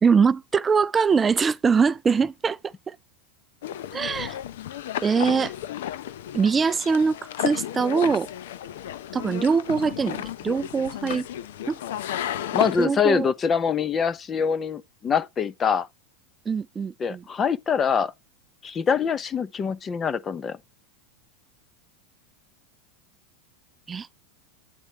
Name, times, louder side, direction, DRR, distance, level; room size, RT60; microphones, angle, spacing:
voice 1, 0.0-3.0 3.9-4.4 5.0-5.5 6.3-8.3 9.1-11.3 11.7-11.8 12.8-13.3 16.5-17.2 23.9-24.1, right 5 dB, 20° right, 0.4 m, -23 dB
sound 1, 3.6-12.9, left 11 dB, 75° left, 0.6 m, -33 dB
voice 2, 12.5-15.9 17.0-18.1 18.6-20.6, left 6 dB, 25° left, 0.7 m, -24 dB
9.1 x 8.1 x 2.9 m
hypercardioid pair, 105°, 0 cm